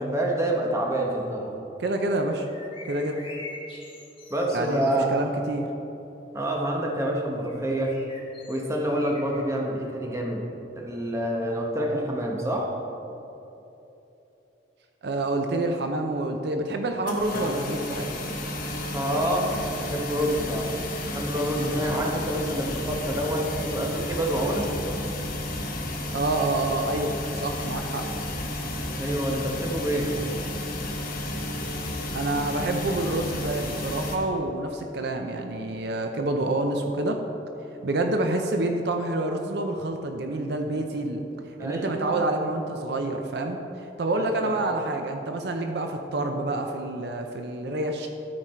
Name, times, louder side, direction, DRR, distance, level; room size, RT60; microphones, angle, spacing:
voice 1, 0.0-1.6 4.3-5.1 6.3-7.9 8.5-10.4 10.8-12.7 18.9-20.8 21.0-24.7 29.0-30.1 41.6-42.3 44.2-44.5, right 1 dB, 15° right, -1 dB, 1.0 m, -27 dB
voice 2, 1.8-2.5 2.9-3.2 4.5-5.7 15.0-18.1 26.1-28.0 32.1-37.2 37.8-41.2 41.6-43.6 44.0-48.1, right 2 dB, 65° right, 4 dB, 0.6 m, -27 dB
sound 1, 2.4-5.1 7.5-9.4, left 2 dB, 30° left, 1.2 m, -44 dB
sound 2, 17.1-34.2, left 1 dB, 55° left, 1.1 m, -32 dB
13.0 x 4.8 x 4.4 m, 3.0 s
head